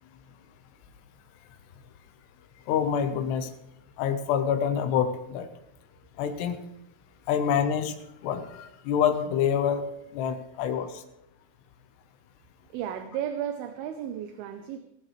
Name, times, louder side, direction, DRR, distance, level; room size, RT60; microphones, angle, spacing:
voice 1, 2.7-3.5 4.0-5.5 6.2-6.6 7.3-8.0 8.2-9.9 10.1-11.0, left 8 dB, 75° left, 6 dB, 3.1 m, -26 dB
voice 2, 12.7-14.8, right 10 dB, 75° right, 8 dB, 2.4 m, -34 dB
16.5 x 15.5 x 3.3 m, 0.82 s
omnidirectional pair, 5.0 m